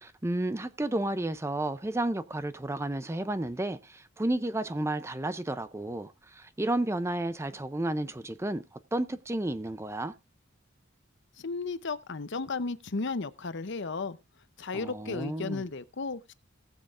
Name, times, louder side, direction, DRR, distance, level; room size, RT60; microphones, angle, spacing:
voice 1, 0.0-8.6 8.9-10.1 14.7-15.6, right 1 dB, 15° right, 0.5 m, -32 dB
voice 2, 11.4-14.2 14.6-16.3, left 4 dB, 55° left, 0.7 m, -34 dB
19.0 x 7.6 x 2.5 m
head